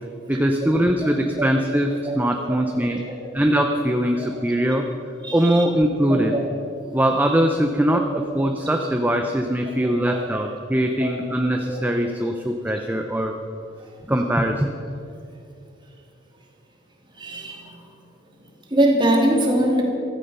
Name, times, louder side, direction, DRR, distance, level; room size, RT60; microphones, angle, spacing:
voice 1, 0.3-3.0 3.3-4.9 5.3-6.4 6.9-13.3 14.1-14.7, right 1 dB, 10° right, 3 dB, 0.6 m, -21 dB
voice 2, 5.2-5.6 6.1-6.5 9.8-10.3 11.0-11.1 11.6-11.8 17.2-17.8 18.7-19.8, right 1 dB, 25° right, -1 dB, 2.7 m, -23 dB
15.5 x 13.5 x 5.5 m, 2.6 s
head